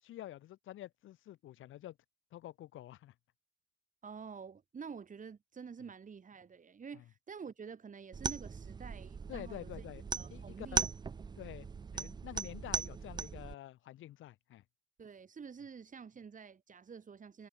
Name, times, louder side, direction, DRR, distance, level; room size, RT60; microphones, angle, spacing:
voice 1, 0.0-2.0 2.3-3.1 6.9-7.0 9.3-10.0 10.3-10.9 11.4-14.6, left 14 dB, 80° left, 5.9 m, -48 dB
voice 2, 4.0-9.7 10.2-10.9 15.0-17.5, right 6 dB, 40° right, 3.8 m, -48 dB
sound 1, 8.1-13.5, right 5 dB, 20° right, 0.3 m, -39 dB
cardioid pair, 90°, 20 cm